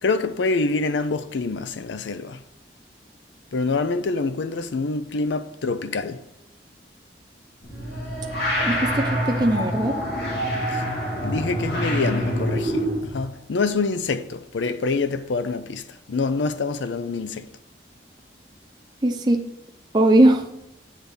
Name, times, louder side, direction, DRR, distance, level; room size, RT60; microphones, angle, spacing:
voice 1, 0.0-2.4 3.5-6.2 10.7-10.8 11.2-17.5, left 3 dB, 85° left, 0.5 m, -26 dB
sound 1, 7.6-13.2, equal, 65° left, 2.0 m, -26 dB
voice 2, 8.6-9.9 19.0-19.4 19.9-20.4, right 1 dB, 25° right, 0.5 m, -19 dB
8.0 x 3.5 x 4.1 m
head